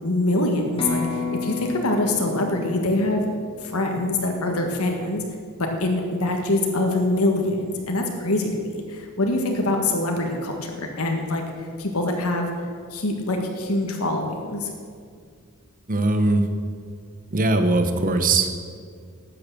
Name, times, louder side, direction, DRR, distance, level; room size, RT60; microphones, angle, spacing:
voice 1, 0.0-3.2 3.6-5.2 5.6-11.4 11.8-12.5 12.9-14.7, left 2 dB, 75° left, 2 dB, 1.6 m, -24 dB
sound 1, 0.8-4.6, left 4 dB, 25° left, 2.1 m, -32 dB
voice 2, 15.9-16.5 17.3-18.5, right 2 dB, 40° right, 8 dB, 1.0 m, -20 dB
12.5 x 8.5 x 6.8 m, 2.1 s
head